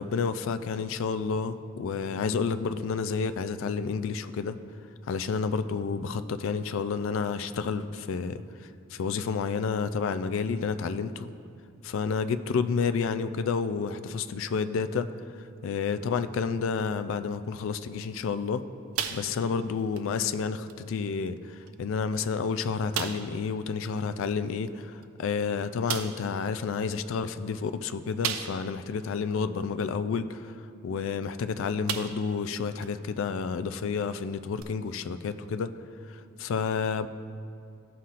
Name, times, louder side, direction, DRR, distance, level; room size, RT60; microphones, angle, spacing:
voice 1, 0.0-4.6 5.1-11.3 11.8-15.1 15.6-18.6 19.1-30.5 30.8-35.7 36.1-37.1, left 5 dB, 65° left, 12 dB, 0.3 m, -30 dB
sound 1, 18.9-19.6 19.9-20.1 20.7-20.8 21.6-21.7 22.1-22.2 22.9-23.4 25.0-25.1 25.9-26.3 28.2-28.8 29.3-29.4 31.2-31.4 31.9-32.4 32.8-32.9 34.6-34.7, right 8 dB, 85° right, 0.5 m, -34 dB
14.5 x 5.7 x 2.5 m, 2.4 s
head